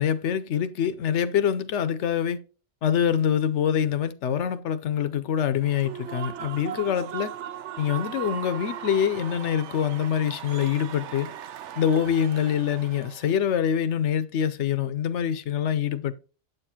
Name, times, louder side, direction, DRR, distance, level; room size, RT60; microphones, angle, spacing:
voice 1, 0.0-2.4 2.8-7.3 7.8-11.3 11.8-16.1, left 8 dB, 75° left, 0.9 m, -25 dB
Human voice / Cheering / Applause, 5.6-13.3, right 10 dB, 75° right, 0.9 m, -38 dB
8.2 x 6.6 x 2.8 m
omnidirectional pair, 1.2 m